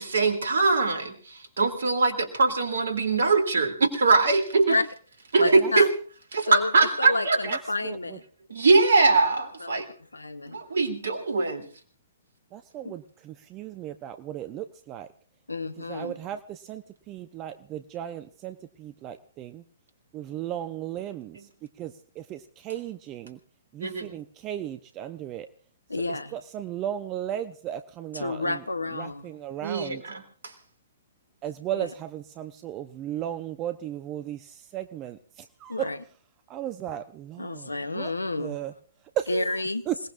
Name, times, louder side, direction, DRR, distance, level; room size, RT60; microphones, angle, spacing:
voice 1, 0.0-4.8 5.3-5.9 6.3-7.6 8.5-9.9 10.4-11.7 21.3-21.5 23.8-24.1 29.6-30.5, right 3 dB, 65° right, 6 dB, 3.0 m, -22 dB
voice 2, 5.4-5.9 6.5-8.2 9.6-9.8 10.1-10.6 12.8-12.9 15.5-16.2 25.9-26.3 28.1-29.3 31.8-31.9 35.7-36.0 37.4-38.6 39.3-39.9, left 2 dB, 80° left, 11 dB, 1.2 m, -30 dB
voice 3, 12.5-15.1 15.9-19.6 20.1-21.4 21.8-23.4 23.7-25.5 26.1-28.6 29.0-30.0 31.4-35.2 35.6-35.9 36.5-38.1 38.4-38.7 39.2-39.5 39.9-40.0, right 11 dB, 25° right, 10 dB, 0.8 m, -35 dB
27.5 x 18.5 x 2.5 m, 0.41 s
figure-of-eight pair, 120°, 0 cm